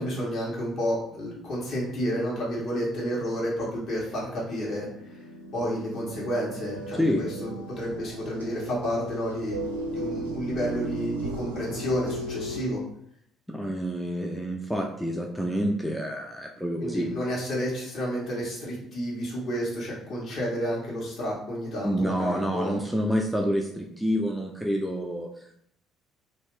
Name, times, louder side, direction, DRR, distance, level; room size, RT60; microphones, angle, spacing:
voice 1, 0.0-5.2 5.5-12.8 16.8-22.8, equal, 50° left, -5 dB, 1.4 m, -31 dB
sound 1, 4.7-12.6, right 1 dB, 85° right, 0.5 m, -36 dB
voice 2, 13.5-17.1 21.8-25.5, equal, ahead, 0 dB, 0.4 m, -28 dB
2.7 x 2.5 x 3.2 m, 0.70 s
figure-of-eight pair, 50°, 0 cm